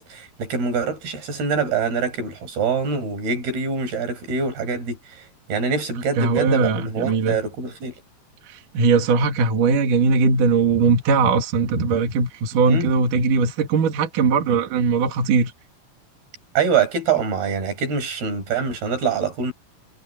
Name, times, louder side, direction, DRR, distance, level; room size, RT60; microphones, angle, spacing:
voice 1, 0.0-8.0 12.6-12.9 16.6-19.5, right 5 dB, 85° right, 7.4 m, -24 dB
voice 2, 6.2-7.4 8.7-15.5, right 4 dB, 60° right, 3.6 m, -19 dB
omnidirectional pair, 4.3 m